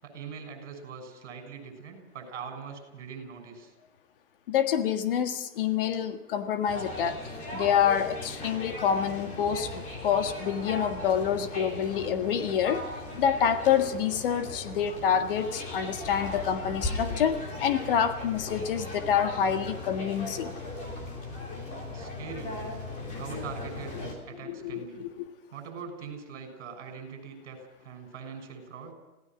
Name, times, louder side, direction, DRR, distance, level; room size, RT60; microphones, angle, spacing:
voice 1, 0.0-3.7 21.9-22.6 23.1-25.0 25.5-28.9, right 6 dB, 50° right, 5 dB, 6.8 m, -42 dB
voice 2, 4.5-7.2 7.5-12.8 13.2-20.5 24.3-25.3, left 8 dB, 40° left, 9 dB, 1.7 m, -27 dB
sound 1, 6.7-24.1, left 2 dB, 15° left, 3.7 m, -38 dB
26.0 x 17.5 x 6.2 m, 1.1 s
hypercardioid pair, 165°, 44 cm